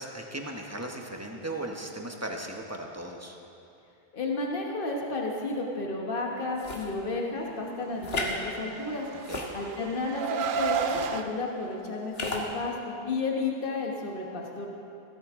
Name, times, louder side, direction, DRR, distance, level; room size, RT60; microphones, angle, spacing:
voice 1, 0.0-3.4 9.1-9.4, right 1 dB, 15° right, 2 dB, 1.0 m, -37 dB
voice 2, 4.1-9.1 9.5-14.7, left 3 dB, 60° left, 0 dB, 1.4 m, -32 dB
sound 1, 6.6-6.9 8.0-8.4 9.2-10.0 10.8-11.1 12.1-12.5, left 2 dB, 75° left, 1.6 m, -33 dB
Car, 8.7-11.2, right 7 dB, 60° right, 0.7 m, -31 dB
15.5 x 13.0 x 3.7 m, 2.7 s
omnidirectional pair, 1.1 m